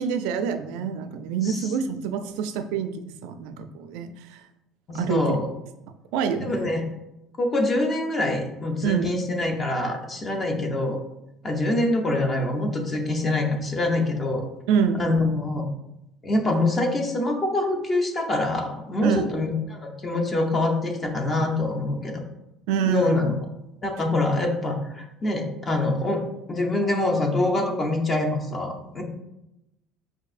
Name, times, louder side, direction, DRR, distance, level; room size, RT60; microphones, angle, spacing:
voice 1, 0.0-2.9 3.2-4.4 4.9-5.3 6.1-6.8 8.8-9.1 14.7-15.0 19.0-19.3 22.7-23.2, right 6 dB, 85° right, 9 dB, 0.4 m, -26 dB
voice 2, 4.9-5.5 6.4-6.8 7.4-11.0 11.4-14.5 15.0-15.6 16.2-22.2 22.9-23.3 23.8-29.0, left 2 dB, 30° left, 2 dB, 0.7 m, -25 dB
5.4 x 2.6 x 2.4 m, 0.89 s
cardioid pair, 120°, 0 cm